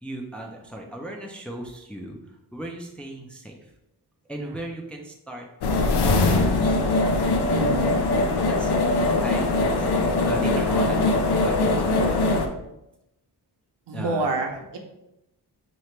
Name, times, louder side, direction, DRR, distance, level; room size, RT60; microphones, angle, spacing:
voice 1, 0.0-2.2 2.5-3.5 4.3-5.5 6.1-6.9 8.5-12.1 13.9-14.2, right 1 dB, 5° left, 0 dB, 0.4 m, -37 dB
sound 1, 5.6-12.5, left 2 dB, 70° left, 0.5 m, -21 dB
voice 2, 7.4-8.0 13.9-14.8, right 3 dB, 85° right, 2 dB, 0.8 m, -28 dB
4.4 x 2.8 x 3.2 m, 0.87 s
wide cardioid pair, 170°, 41 cm